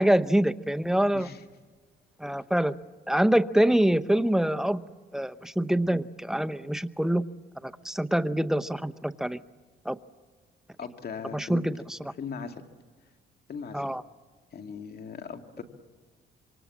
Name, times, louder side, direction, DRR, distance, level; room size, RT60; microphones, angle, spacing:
voice 1, 0.0-1.3 2.2-2.7 3.1-4.8 5.1-7.2 7.6-9.4 9.9-10.0 11.3-12.0 13.7-14.0, right 1 dB, ahead, 12 dB, 0.8 m, -25 dB
voice 2, 10.8-11.6 12.2-12.6 13.5-13.9 14.5-15.6, left 6 dB, 50° left, 5 dB, 2.3 m, -38 dB
26.5 x 25.0 x 7.4 m, 1.5 s
cardioid pair, 90°, 20 cm